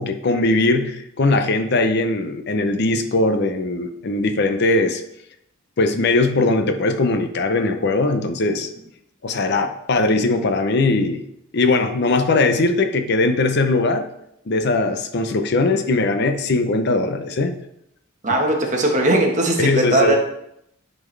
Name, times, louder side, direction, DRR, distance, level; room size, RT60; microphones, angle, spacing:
voice 1, 0.0-5.0 5.8-8.7 9.2-11.2 11.5-14.1 14.5-17.6 19.6-20.2, left 2 dB, 55° left, 7 dB, 0.6 m, -20 dB
voice 2, 18.2-20.2, right 1 dB, 40° right, 1 dB, 1.2 m, -19 dB
10.5 x 4.3 x 3.3 m, 0.77 s
head